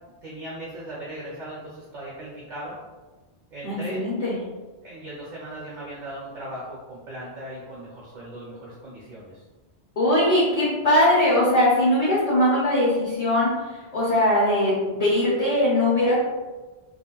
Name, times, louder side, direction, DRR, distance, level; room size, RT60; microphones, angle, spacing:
voice 1, 0.2-2.8 3.5-4.0 4.8-9.4, right 1 dB, 50° right, -6 dB, 0.8 m, -38 dB
voice 2, 3.6-4.4 10.0-13.5 13.9-16.2, left 1 dB, 45° left, -7 dB, 0.7 m, -20 dB
2.4 x 2.1 x 2.9 m, 1.2 s
omnidirectional pair, 1.1 m